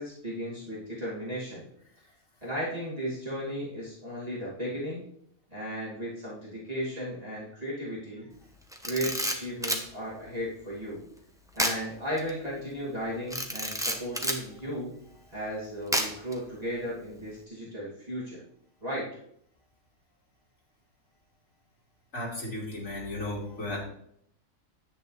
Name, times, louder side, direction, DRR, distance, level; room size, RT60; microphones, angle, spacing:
voice 1, 0.0-1.6 2.4-5.0 5.5-8.3 8.8-11.0 11.5-14.9 15.3-18.4 18.8-19.1, equal, 30° right, -8 dB, 2.8 m, -35 dB
Camera, 8.7-9.9 11.6-11.8 12.2-12.3 13.3-14.4 15.9-16.3, equal, 5° right, 1.0 m, -29 dB
voice 2, 22.1-23.8, left 1 dB, 75° left, -4 dB, 3.5 m, -34 dB
10.5 x 8.5 x 3.3 m, 0.69 s
omnidirectional pair, 1.4 m